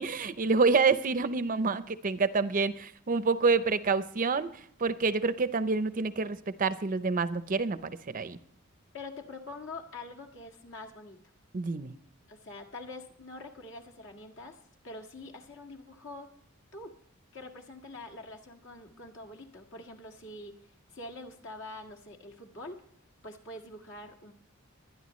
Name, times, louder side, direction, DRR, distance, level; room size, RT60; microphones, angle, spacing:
voice 1, 0.0-4.5 4.8-8.4 11.5-11.9, right 4 dB, 40° right, 0.6 m, -27 dB
voice 2, 8.9-11.2 12.3-16.3 16.7-16.9 17.3-22.8 23.2-24.3, left 2 dB, 60° left, 1.8 m, -45 dB
23.5 x 10.0 x 3.1 m
head